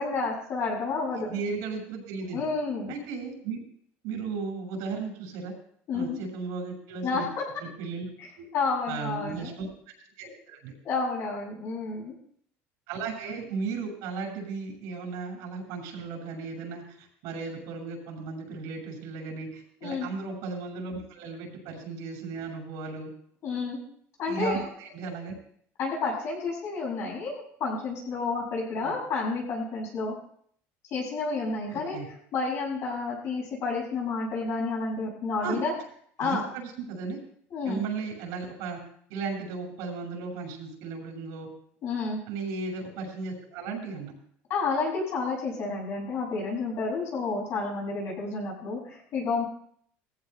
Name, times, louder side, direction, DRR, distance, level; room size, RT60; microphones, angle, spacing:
voice 1, 0.0-1.4 2.3-2.9 5.9-6.2 7.0-7.4 8.2-8.3 8.5-9.5 10.8-12.1 19.8-20.1 23.4-23.8 24.2-24.6 25.8-30.2 30.9-32.0 32.3-35.7 36.2-36.5 37.5-37.8 41.8-42.2 44.5-49.4, left 4 dB, 50° left, -3 dB, 6.8 m, -30 dB
voice 2, 1.1-2.4 2.9-3.6 4.0-5.5 5.9-7.3 7.6-8.0 8.4-8.5 8.8-9.7 10.2-10.7 12.9-23.1 24.3-25.3 28.8-28.9 31.7-32.1 35.4-35.6 36.2-37.2 37.6-38.8 39.1-41.5 42.3-44.1, right 4 dB, 75° right, 1 dB, 6.8 m, -35 dB
20.0 x 15.5 x 2.3 m, 0.62 s
cardioid pair, 130°, 6 cm